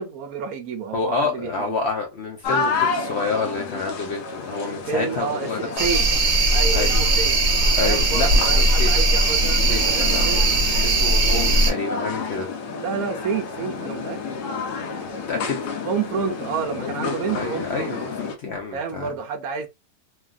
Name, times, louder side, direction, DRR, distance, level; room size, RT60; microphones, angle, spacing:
voice 1, 0.0-1.8 4.6-6.1 6.5-7.4 7.8-10.4 12.8-14.3 15.8-18.0 18.7-19.7, right 5 dB, 70° right, 1.0 m, -29 dB
voice 2, 0.9-5.7 6.7-6.9 7.8-8.9 9.7-10.2 10.8-12.5 15.0-15.6 16.8-19.1, left 4 dB, 60° left, 0.7 m, -28 dB
sound 1, 2.4-18.4, left 4 dB, 85° left, 1.2 m, -30 dB
sound 2, 5.8-11.7, right 2 dB, 45° right, 0.9 m, -19 dB
3.2 x 2.3 x 2.3 m
omnidirectional pair, 1.7 m